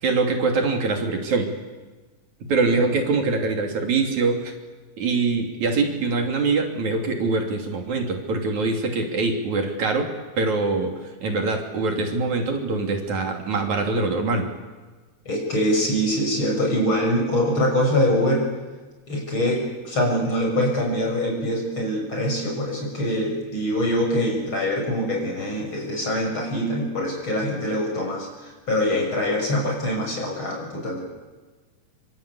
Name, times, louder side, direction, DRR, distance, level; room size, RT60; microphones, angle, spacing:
voice 1, 0.0-1.5 2.5-4.5 5.0-10.9 11.2-14.5, right 3 dB, 70° right, 3 dB, 4.3 m, -23 dB
voice 2, 15.3-18.5 19.1-31.0, equal, 40° left, -1 dB, 7.3 m, -24 dB
26.5 x 25.5 x 8.4 m, 1.3 s
omnidirectional pair, 3.4 m